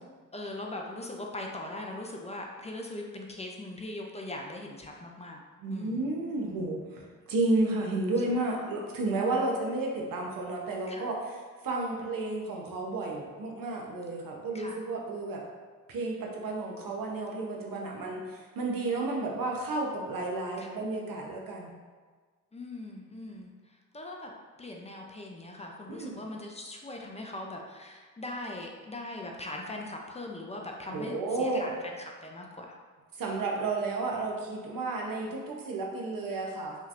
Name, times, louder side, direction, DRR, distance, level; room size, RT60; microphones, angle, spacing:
voice 1, 0.3-5.4 5.7-6.1 10.9-11.1 14.5-14.9 17.7-18.1 20.6-20.8 22.5-24.3 24.6-32.7, left 2 dB, 20° left, 0 dB, 0.4 m, -40 dB
voice 2, 5.6-11.2 11.6-15.4 15.9-21.7 25.9-26.2 30.9-31.7 33.1-36.8, right 2 dB, 80° right, -1 dB, 0.9 m, -32 dB
5.4 x 3.3 x 2.5 m, 1.5 s
wide cardioid pair, 135°, 33 cm